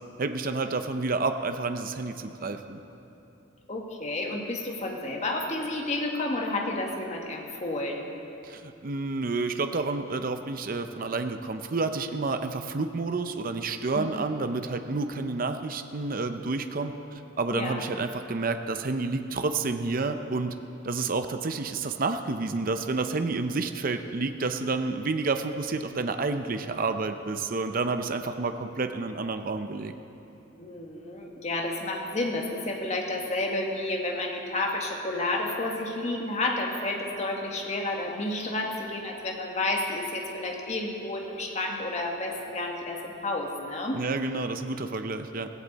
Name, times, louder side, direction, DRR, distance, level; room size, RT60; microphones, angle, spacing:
voice 1, 0.2-2.8 8.4-17.0 17.4-20.6 20.8-29.9 43.9-45.5, right 3 dB, 45° right, 8 dB, 0.6 m, -29 dB
voice 2, 3.7-8.0 13.9-14.2 17.5-17.8 30.6-44.0, left 2 dB, 35° left, 1 dB, 1.5 m, -31 dB
16.0 x 16.0 x 4.1 m, 2.9 s
head